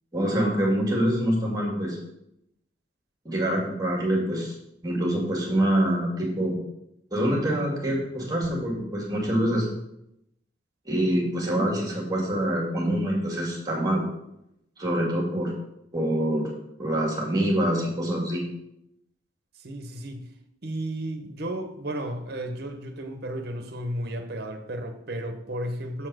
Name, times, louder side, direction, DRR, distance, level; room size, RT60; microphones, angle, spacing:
voice 1, 0.1-2.0 3.2-4.5 4.8-6.6 7.1-9.7 10.9-14.0 14.8-15.5 15.9-16.5 16.8-18.4, right 1 dB, 20° right, 2.1 m, -25 dB
voice 2, 19.6-20.2 20.6-26.1, right 1 dB, 55° right, 1.0 m, -33 dB
7.2 x 4.5 x 6.1 m
head